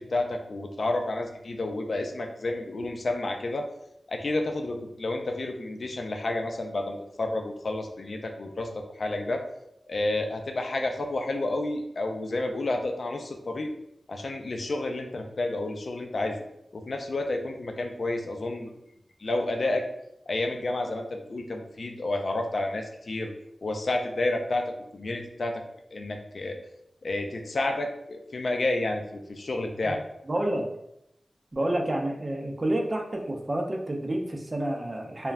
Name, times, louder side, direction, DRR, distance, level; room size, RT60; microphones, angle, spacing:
voice 1, 0.0-3.7 4.1-9.4 9.9-13.7 14.1-16.4 16.7-18.7 19.2-19.8 20.3-23.3 23.6-25.6 25.9-26.6 27.0-30.0, left 2 dB, 65° left, 4 dB, 0.4 m, -30 dB
voice 2, 30.3-30.7 31.5-35.3, right 1 dB, 30° right, 1 dB, 0.4 m, -29 dB
2.3 x 2.1 x 3.3 m, 0.80 s
wide cardioid pair, 105°, 0 cm